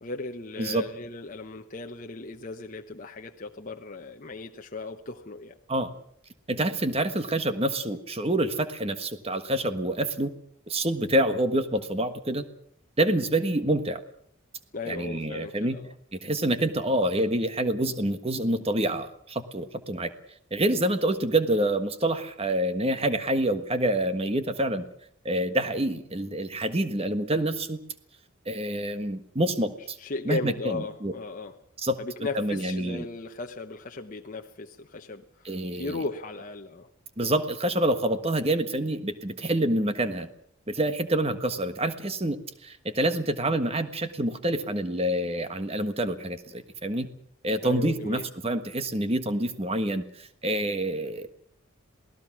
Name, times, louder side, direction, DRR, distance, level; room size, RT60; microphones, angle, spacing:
voice 1, 0.0-5.6 14.7-15.9 30.0-31.6 32.0-36.9 47.6-48.3, left 3 dB, 35° left, 3 dB, 0.9 m, -36 dB
voice 2, 6.5-10.3 10.7-12.5 13.0-14.0 14.8-15.8 16.1-20.1 20.5-24.8 25.2-27.8 28.4-30.0 30.2-31.1 31.8-32.0 32.3-33.1 35.4-36.0 37.2-40.3 40.7-42.4 42.6-47.1 47.4-51.3, right 1 dB, 25° right, 10 dB, 1.4 m, -27 dB
27.5 x 18.0 x 6.1 m, 0.66 s
head